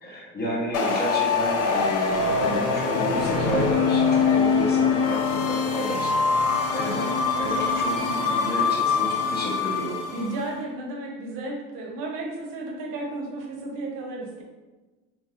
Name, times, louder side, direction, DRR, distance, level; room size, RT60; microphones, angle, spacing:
voice 1, 0.0-10.0, right 1 dB, 25° left, -3 dB, 0.9 m, -31 dB
sound 1, 0.7-10.4, left 5 dB, 40° left, 0.5 m, -23 dB
voice 2, 2.4-2.7 10.1-14.4, right 2 dB, 60° right, 0 dB, 0.8 m, -33 dB
3.0 x 2.7 x 2.4 m, 1.2 s
supercardioid pair, 90°, 37 cm